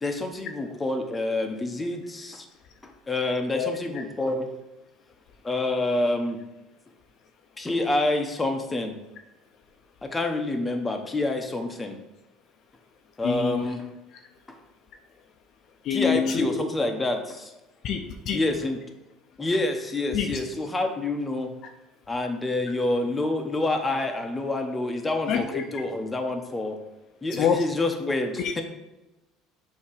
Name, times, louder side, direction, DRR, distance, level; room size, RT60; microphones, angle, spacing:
voice 1, 0.0-2.5 2.8-4.5 5.4-6.4 7.6-8.9 10.0-12.0 13.2-13.9 14.5-14.6 15.9-17.5 18.3-18.8 19.4-21.5 22.1-26.8 27.2-28.6, left 2 dB, 15° left, 4 dB, 0.8 m, -27 dB
voice 2, 13.2-13.7 15.8-16.6 17.8-18.4 20.1-20.4 21.6-21.7 25.3-25.8 27.3-27.6 28.4-28.5, left 7 dB, 50° left, 5 dB, 0.6 m, -26 dB
7.1 x 2.8 x 4.9 m, 0.99 s
cardioid pair, 120°, 0 cm